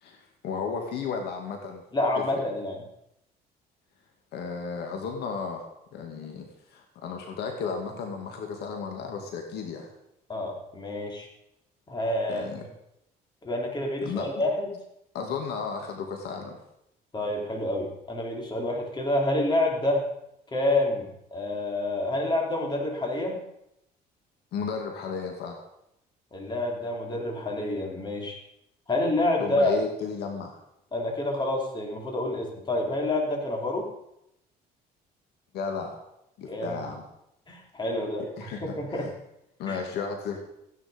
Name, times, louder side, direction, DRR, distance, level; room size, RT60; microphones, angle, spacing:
voice 1, 0.0-1.8 4.3-6.5 6.7-9.9 12.3-12.6 14.0-14.3 15.1-16.6 24.5-25.6 29.4-30.6 35.5-36.0 36.4-37.0 38.4-39.1 39.6-40.4, left 5 dB, 75° left, 3 dB, 2.3 m, -34 dB
voice 2, 1.9-2.8 10.3-11.3 11.9-12.7 13.4-14.7 17.1-20.0 20.5-23.4 26.3-28.4 28.9-29.7 30.9-33.9 36.5-36.8 37.5-39.0 39.7-39.8, left 1 dB, 25° left, 0 dB, 3.9 m, -28 dB
15.0 x 10.0 x 5.3 m, 0.80 s
cardioid pair, 110°, 17 cm